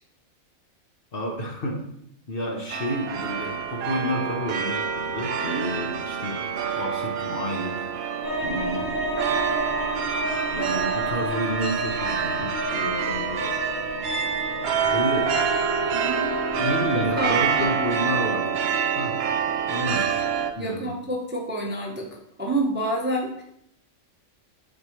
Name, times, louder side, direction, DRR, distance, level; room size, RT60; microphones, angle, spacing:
voice 1, 1.1-1.8 2.3-6.4 6.7-7.9 8.4-8.9 9.9-10.0 10.5-13.5 14.8-15.4 16.6-18.6 18.9-19.3 19.6-20.1 20.6-21.0, equal, 45° left, 0 dB, 1.2 m, -30 dB
sound 1, 2.7-20.5, right 7 dB, 60° right, 0.7 m, -27 dB
sound 2, 8.2-17.6, equal, 85° left, 2.0 m, -32 dB
voice 2, 15.9-16.3 16.9-17.7 20.5-22.1 22.4-23.4, right 1 dB, 10° right, -1 dB, 0.8 m, -28 dB
9.2 x 4.4 x 3.2 m, 0.73 s
omnidirectional pair, 1.4 m